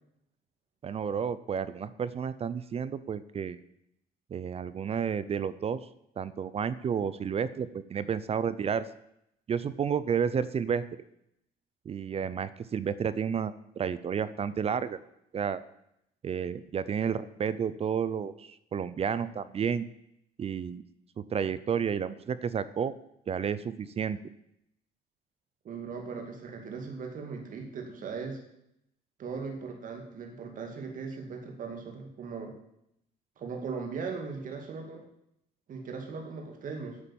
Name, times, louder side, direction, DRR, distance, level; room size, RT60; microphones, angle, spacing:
voice 1, 0.8-3.6 4.3-5.8 6.2-8.9 9.5-10.8 11.9-15.0 15.3-15.6 16.2-19.9 20.4-20.8 21.2-22.9 23.3-24.2, right 7 dB, 35° right, 16 dB, 0.6 m, -31 dB
voice 2, 25.6-28.4 29.2-32.5 33.4-35.0 35.7-37.0, right 5 dB, 50° right, 3 dB, 2.3 m, -38 dB
9.7 x 8.5 x 7.2 m, 0.79 s
cardioid pair, 110°, 17 cm